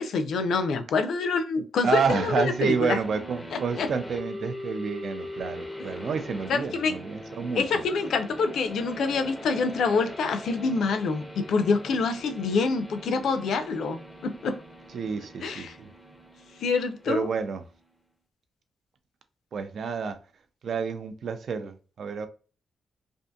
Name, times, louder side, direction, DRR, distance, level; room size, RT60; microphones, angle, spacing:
voice 1, 0.0-3.0 3.8-3.9 6.5-6.9 7.6-14.6 15.4-15.7 16.6-17.3, left 4 dB, 75° left, 0.4 m, -26 dB
voice 2, 1.8-7.8 14.9-15.9 17.1-17.6 19.5-20.2 20.6-22.3, right 5 dB, 55° right, 0.4 m, -29 dB
sound 1, 2.0-17.8, left 1 dB, 5° left, 0.5 m, -42 dB
2.6 x 2.5 x 2.2 m
wide cardioid pair, 160°, 0 cm